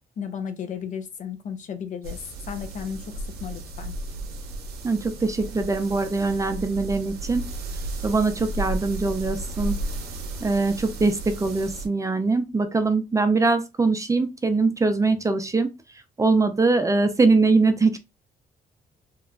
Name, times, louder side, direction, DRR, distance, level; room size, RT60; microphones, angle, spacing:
voice 1, 0.2-4.0, left 7 dB, 55° left, 0.5 m, -34 dB
sound 1, 2.0-11.9, right 2 dB, 85° right, 0.6 m, -34 dB
voice 2, 4.8-7.5 8.0-9.7 10.4-15.7 16.2-18.0, right 3 dB, 20° right, 0.4 m, -22 dB
2.9 x 2.1 x 2.4 m
cardioid pair, 75°, 16 cm